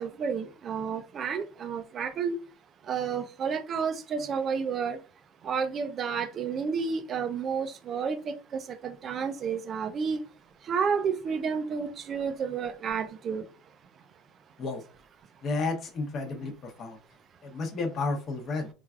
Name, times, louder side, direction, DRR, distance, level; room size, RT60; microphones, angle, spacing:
voice 1, 0.0-2.4 2.9-5.0 5.4-10.2 10.6-13.4, right 6 dB, 40° right, 0.4 m, -31 dB
voice 2, 15.4-17.0 17.4-18.7, left 3 dB, 40° left, 0.8 m, -32 dB
3.2 x 2.3 x 2.3 m
supercardioid pair, 120°, 0 cm